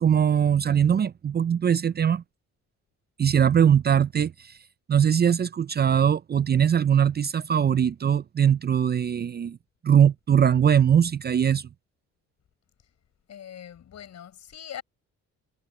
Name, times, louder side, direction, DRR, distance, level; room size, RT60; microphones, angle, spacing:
voice 1, 0.0-2.2 3.2-4.6 4.9-9.6 9.8-11.7, right 8 dB, 35° right, 0.5 m, -21 dB
voice 2, 13.3-14.8, left 9 dB, 60° left, 5.3 m, -41 dB
cardioid pair, 90°, 30 cm